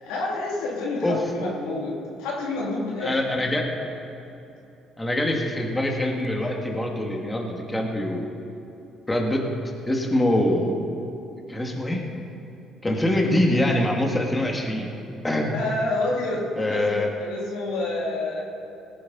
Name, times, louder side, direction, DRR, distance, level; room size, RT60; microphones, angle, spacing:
voice 1, 0.0-3.2 15.5-18.4, left 2 dB, 90° left, -3 dB, 2.8 m, -28 dB
voice 2, 3.0-3.7 5.0-8.3 9.1-9.5 9.9-10.8 11.5-12.0 12.8-14.9 15.2-15.5 16.6-17.1, left 1 dB, 15° left, 0 dB, 2.1 m, -24 dB
19.0 x 10.5 x 4.2 m, 2.9 s
supercardioid pair, 80°, 0 cm